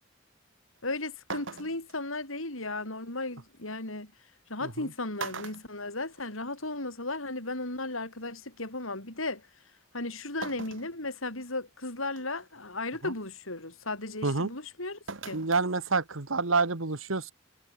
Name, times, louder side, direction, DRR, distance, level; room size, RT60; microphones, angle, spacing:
voice 1, 0.8-4.1 4.5-9.4 9.9-15.0 15.2-15.4, left 2 dB, 90° left, 7.9 m, -35 dB
sound 1, 0.8-0.9 1.3-2.0 3.6-3.7 4.6-4.8 5.2-6.6 6.9-7.0 8.2-8.3 10.4-10.9 11.5-11.6 12.2-12.5 15.1-15.7 16.0-16.1, right 4 dB, 70° right, 1.7 m, -40 dB
voice 2, 15.3-17.3, right 3 dB, 85° right, 1.7 m, -28 dB
head